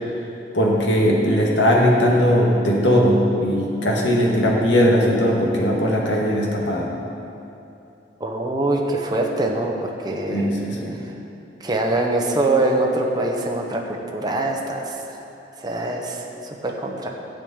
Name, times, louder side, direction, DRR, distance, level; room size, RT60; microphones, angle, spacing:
voice 1, 0.5-6.9 10.3-10.9, equal, 70° left, -2 dB, 1.9 m, -19 dB
voice 2, 8.2-10.5 11.6-15.2 15.6-17.1, right 2 dB, 25° right, 0 dB, 1.0 m, -24 dB
12.5 x 5.2 x 8.8 m, 2.7 s
head